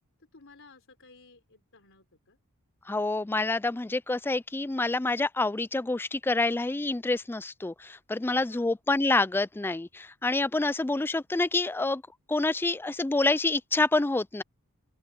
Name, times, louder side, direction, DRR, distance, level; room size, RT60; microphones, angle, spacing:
voice 1, 0.2-2.4 8.2-8.8, left 3 dB, 60° left, 4.0 m, -56 dB
voice 2, 2.9-12.0 12.3-14.4, left 2 dB, 10° left, 0.3 m, -27 dB
open air
head